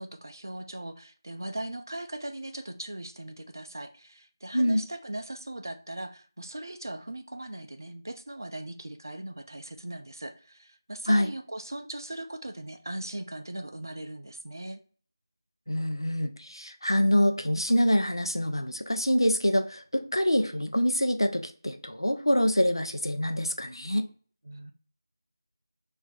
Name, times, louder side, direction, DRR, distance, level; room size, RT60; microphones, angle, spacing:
voice 1, 0.0-14.8 24.4-24.7, right 1 dB, 50° right, 7 dB, 0.4 m, -39 dB
voice 2, 4.5-4.8 11.1-11.3 15.7-24.1, equal, 85° left, 6 dB, 0.5 m, -25 dB
3.3 x 2.6 x 3.8 m, 0.41 s
figure-of-eight pair, 170°, 2 cm